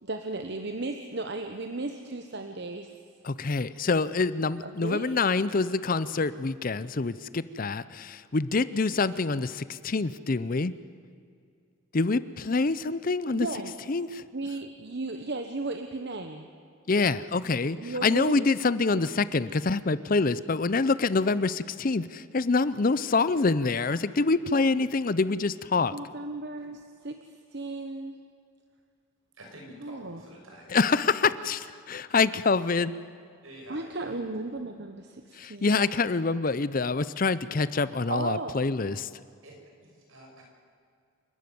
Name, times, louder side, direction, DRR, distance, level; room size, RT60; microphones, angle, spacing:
voice 1, 0.0-3.0 4.6-5.1 13.3-13.7 14.3-16.5 17.8-18.5 18.9-19.0 25.9-28.2 29.8-30.2 33.7-35.7 38.1-38.6, right 2 dB, 55° right, 1.1 m, -35 dB
voice 2, 3.2-10.7 11.9-13.5 13.9-14.2 16.9-25.9 30.7-32.9 35.3-39.1, left 4 dB, 40° left, 0.6 m, -26 dB
voice 3, 29.3-30.7 33.4-34.2 39.4-40.4, equal, 75° right, 6.3 m, -48 dB
28.0 x 12.5 x 9.4 m
head